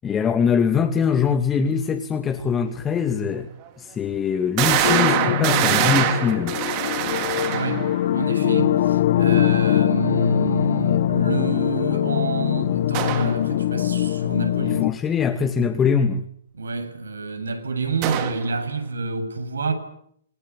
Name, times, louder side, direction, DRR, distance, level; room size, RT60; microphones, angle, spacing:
voice 1, 0.0-3.5 3.8-6.6 14.6-16.2, left 6 dB, 20° left, 2.4 m, -22 dB
sound 1, 3.0-3.1 3.7-3.8 4.6-8.0 12.9-13.4 18.0-18.5, right 11 dB, 40° right, 4.5 m, -23 dB
sound 2, 4.8-14.9, left 12 dB, 55° left, 1.5 m, -22 dB
voice 2, 7.5-14.9 16.5-19.7, right 4 dB, 80° right, 7.9 m, -28 dB
27.5 x 23.5 x 8.6 m
hypercardioid pair, 120°, 0 cm